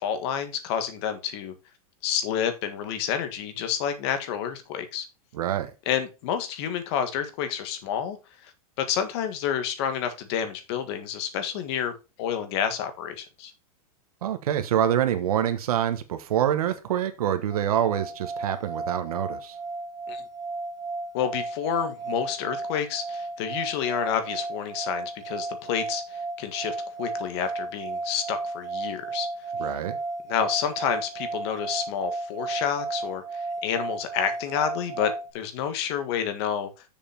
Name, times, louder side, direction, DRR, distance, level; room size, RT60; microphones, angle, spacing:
voice 1, 0.0-1.5 2.0-5.0 5.8-8.2 8.4-8.5 8.8-11.9 12.2-13.5 20.1-20.2 21.1-29.3 30.3-36.7, left 8 dB, 45° left, 9 dB, 1.6 m, -29 dB
voice 2, 5.3-5.7 14.2-19.5 29.6-30.0, right 10 dB, 80° right, 8 dB, 1.3 m, -26 dB
sound 1, 17.5-35.3, right 3 dB, 20° right, 0.9 m, -34 dB
6.9 x 5.3 x 5.7 m, 0.29 s
supercardioid pair, 160°, 19 cm